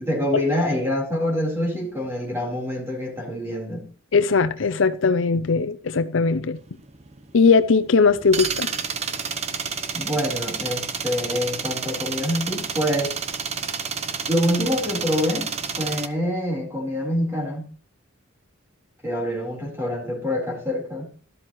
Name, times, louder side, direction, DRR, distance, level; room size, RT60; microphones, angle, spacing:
voice 1, 0.0-3.8 9.9-13.1 14.3-15.5 15.8-17.6 19.0-21.2, equal, 10° right, 3.9 m, -26 dB
voice 2, 4.1-6.6 7.3-8.7, left 4 dB, 65° left, 0.5 m, -19 dB
sound 1, 6.6-16.1, right 6 dB, 30° right, 0.8 m, -30 dB
13.0 x 12.0 x 3.1 m
head